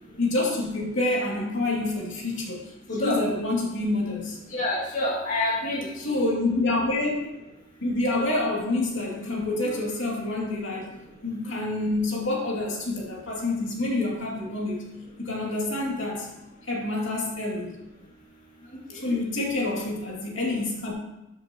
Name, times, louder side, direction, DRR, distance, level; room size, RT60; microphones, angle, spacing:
voice 1, 0.2-4.4 6.0-7.2 7.8-10.9 11.2-14.8 15.2-16.3 16.7-17.7 18.9-20.9, left 2 dB, 80° left, -3 dB, 2.5 m, -27 dB
voice 2, 4.5-6.1 18.9-19.2, left 1 dB, 40° left, -4 dB, 2.0 m, -28 dB
13.0 x 7.5 x 3.0 m, 0.96 s
head